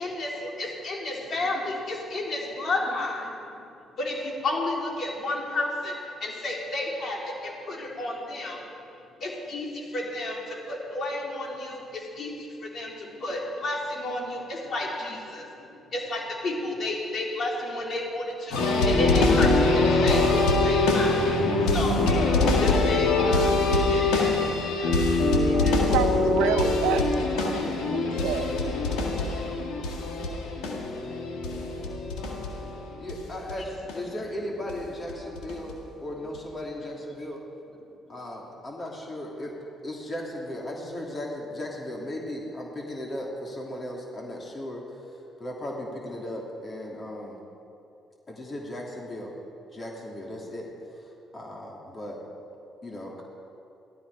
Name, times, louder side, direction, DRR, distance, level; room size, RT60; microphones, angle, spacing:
voice 1, 0.0-3.3 4.0-8.6 9.2-15.6 15.9-21.2 21.7-22.1 22.6-25.2 25.4-25.9 27.4-28.0 38.8-38.9, left 2 dB, 55° left, -2 dB, 3.8 m, -32 dB
sound 1, 18.5-33.2 33.5-33.6 33.9-34.0 34.7-34.8 35.1-35.7 36.3-36.4, left 2 dB, 85° left, 1.9 m, -23 dB
voice 2, 25.9-27.5 27.9-28.5, right 8 dB, 85° right, 5 dB, 0.9 m, -28 dB
voice 3, 33.0-37.4 38.1-39.5 39.8-44.8 45.4-47.3 48.3-49.3 49.7-50.7 50.9-51.0 51.3-52.2 52.8-53.2, left 1 dB, 35° left, -2 dB, 2.9 m, -36 dB
16.5 x 12.5 x 4.9 m, 2.7 s
supercardioid pair, 65°, 0 cm